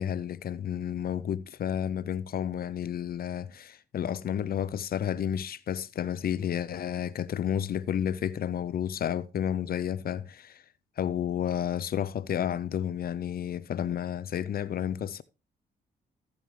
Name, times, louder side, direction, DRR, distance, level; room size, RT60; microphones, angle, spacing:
voice 1, 0.0-10.6 11.0-15.2, left 9 dB, 55° left, 0.6 m, -31 dB
15.0 x 7.2 x 3.2 m
supercardioid pair, 60°, 18 cm